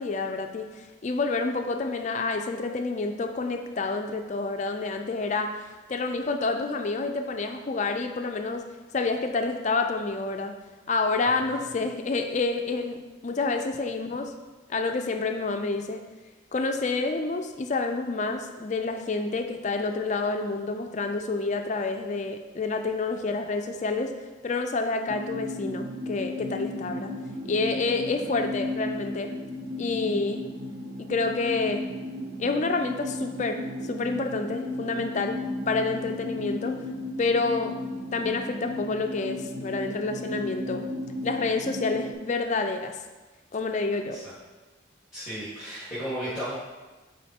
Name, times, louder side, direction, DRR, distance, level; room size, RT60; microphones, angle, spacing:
voice 1, 0.0-5.5 5.9-8.6 8.9-10.5 10.9-13.0 13.2-14.3 14.7-16.0 16.5-24.1 24.4-27.1 27.4-29.3 29.8-30.5 31.1-31.9 32.4-36.8 37.2-37.8 38.1-40.9 41.2-43.0 43.5-44.2, left 3 dB, 35° left, 5 dB, 0.4 m, -28 dB
sound 1, 25.1-42.1, left 1 dB, 75° right, 0.6 m, -35 dB
voice 2, 45.1-46.5, equal, 5° right, -11 dB, 1.5 m, -34 dB
8.5 x 3.9 x 2.8 m, 1.2 s
head